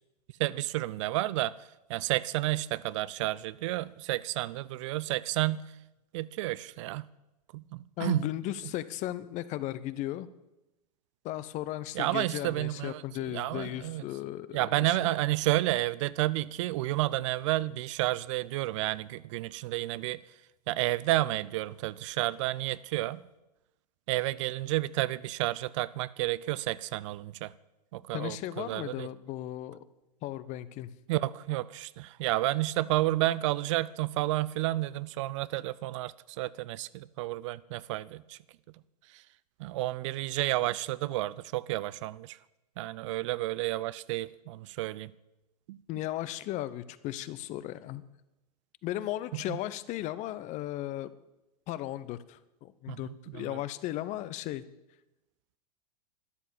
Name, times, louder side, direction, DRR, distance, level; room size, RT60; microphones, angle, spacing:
voice 1, 0.4-5.6 6.1-7.1 7.5-8.3 11.9-13.0 13.3-14.0 14.5-20.2 20.7-23.2 24.1-27.5 27.9-29.1 31.1-38.4 39.1-39.2 39.6-42.4 42.8-45.1 45.7-45.8 49.3-49.6 52.9-53.0 53.3-53.6, right 17 dB, 50° right, 0.5 m, -31 dB
voice 2, 8.0-10.3 11.2-15.1 28.1-29.8 30.2-30.9 45.9-48.0 48.8-51.1 51.7-54.6, left 14 dB, 35° left, 0.8 m, -36 dB
12.5 x 11.5 x 7.3 m
figure-of-eight pair, 90°, 21 cm